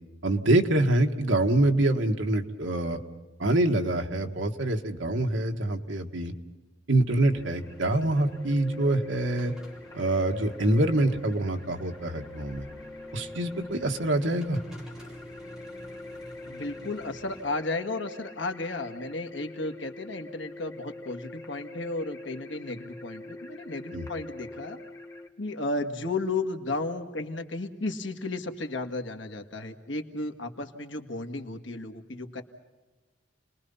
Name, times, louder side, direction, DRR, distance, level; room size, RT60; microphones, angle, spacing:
voice 1, 0.2-3.0 3.4-6.3 6.9-9.5 9.9-12.6 13.1-14.6 23.9-24.1, right 1 dB, 75° right, 4 dB, 1.8 m, -25 dB
sound 1, 7.1-17.6, equal, 5° right, 3.5 m, -49 dB
sound 2, 7.3-25.3, left 2 dB, 15° left, 2.1 m, -44 dB
voice 2, 16.5-24.8 25.4-32.4, left 2 dB, 70° left, 5 dB, 1.9 m, -34 dB
30.0 x 21.0 x 5.6 m, 1.2 s
head